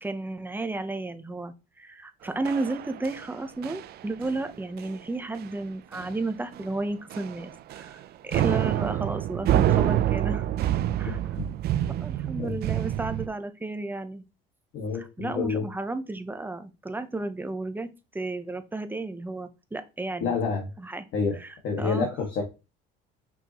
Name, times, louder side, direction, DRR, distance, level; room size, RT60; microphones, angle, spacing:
voice 1, 0.0-10.4 11.0-11.2 12.0-14.2 14.9-17.9 18.1-20.3 20.8-21.1 21.4-21.5 21.8-22.1, right 2 dB, 10° right, 9 dB, 0.8 m, -33 dB
sound 1, 2.4-3.3 3.6-3.9 4.2-4.5 4.8-5.0 5.4-5.5 5.9-6.3 6.5-6.7 7.1-8.0 8.3-13.3, right 12 dB, 55° right, 0.6 m, -27 dB
voice 2, 14.7-15.6 20.2-20.7 21.1-21.4 21.6-22.4, left 5 dB, 65° left, 2 dB, 1.8 m, -28 dB
5.9 x 5.9 x 3.0 m, 0.28 s
cardioid pair, 120°, 19 cm